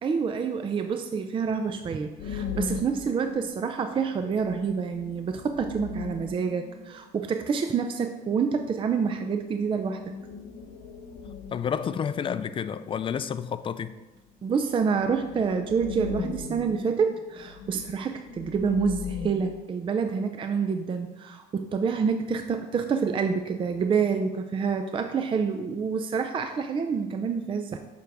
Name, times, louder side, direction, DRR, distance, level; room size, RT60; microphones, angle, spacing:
voice 1, 0.0-10.0 14.4-27.8, right 6 dB, 30° right, 0.4 m, -27 dB
sound 1, 2.2-3.7 4.0-4.1 4.3-7.5 9.7-11.8 14.4-14.5 14.8-19.6, left 5 dB, 75° left, 0.9 m, -38 dB
voice 2, 11.5-13.9, left 7 dB, 30° left, 0.4 m, -30 dB
6.9 x 6.2 x 3.5 m
cardioid pair, 110°, 17 cm